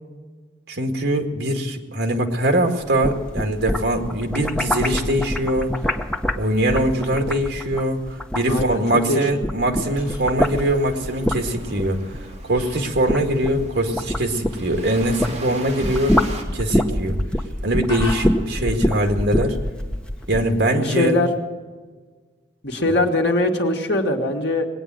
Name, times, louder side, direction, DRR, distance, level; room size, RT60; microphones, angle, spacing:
voice 1, 0.7-5.8 6.4-12.0 12.4-16.2 16.5-17.2 17.6-19.6 20.3-21.2, right 1 dB, 65° right, 4 dB, 2.0 m, -22 dB
sound 1, 2.8-9.0 9.3-15.4 15.7-20.5, left 1 dB, 5° left, 0.7 m, -25 dB
voice 2, 8.5-8.8 9.1-9.2 20.7-21.3 22.6-24.7, left 2 dB, 60° left, 3 dB, 1.7 m, -21 dB
Fowl, 9.4-21.4, left 2 dB, 25° left, 4.9 m, -44 dB
sound 2, 10.4-16.4, right 2 dB, 35° right, 2.3 m, -39 dB
20.5 x 9.1 x 7.6 m, 1.4 s
head